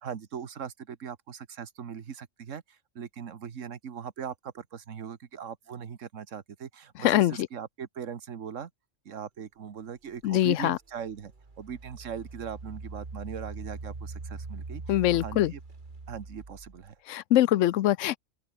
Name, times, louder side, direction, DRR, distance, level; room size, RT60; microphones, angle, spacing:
voice 1, 0.0-8.7 9.0-15.6 16.1-17.0, right 7 dB, 75° right, 1.7 m, -40 dB
voice 2, 7.0-7.5 10.2-10.8 14.9-15.5 17.1-18.2, left 13 dB, 75° left, 0.9 m, -23 dB
Engine, 10.2-10.3 11.0-16.9, right 3 dB, 40° right, 2.1 m, -42 dB
open air
omnidirectional pair, 1.3 m